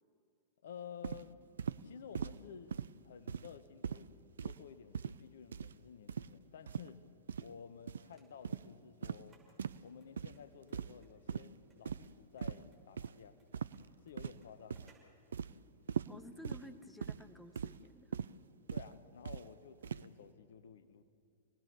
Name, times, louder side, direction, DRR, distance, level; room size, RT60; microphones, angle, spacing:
voice 1, 0.6-1.4 1.8-2.8 3.0-4.1 4.4-7.0 7.4-9.4 9.8-13.4 14.0-14.9 15.4-15.6 18.7-21.0, left 7 dB, 65° left, 11 dB, 1.2 m, -53 dB
sound 1, 1.0-1.2 1.6-1.8 2.1-2.4 2.7-2.9 3.3-3.6 3.8-4.0 4.4-4.6 4.9-5.2 5.5-5.7 6.1-6.3 6.7-6.9 7.3-7.5 7.9-8.0 8.4-8.7 9.0-9.2 9.6-9.8 10.2-10.4 10.7-11.0 11.3-11.5 11.9-12.1 12.4-12.6 13.0-13.1 13.5-13.8 14.2-14.5 14.7-14.9 15.3-15.5 15.9-16.1 16.4-16.6 17.0-17.2 17.6-17.8 18.1-18.3 18.7-18.9 19.2-19.4 19.8-20.1, right 7 dB, 70° right, 0.5 m, -40 dB
sound 2, 8.1-15.3, right 3 dB, 15° right, 6.3 m, -70 dB
voice 2, 16.1-18.1, left 1 dB, 5° left, 8 dB, 1.5 m, -53 dB
28.0 x 19.0 x 6.9 m, 2.4 s
figure-of-eight pair, 100°, 0 cm